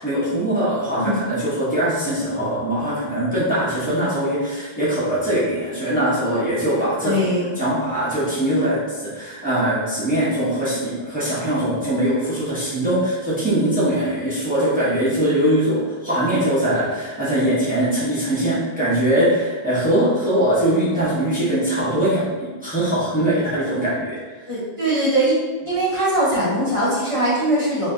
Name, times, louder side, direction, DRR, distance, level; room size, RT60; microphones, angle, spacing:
voice 1, 0.0-7.2 7.5-24.2, right 1 dB, 10° right, -11 dB, 1.3 m, -21 dB
voice 2, 7.0-7.5 24.5-25.3 25.6-27.9, right 1 dB, 30° left, -10 dB, 1.1 m, -21 dB
3.3 x 2.8 x 3.8 m, 1.3 s
omnidirectional pair, 1.1 m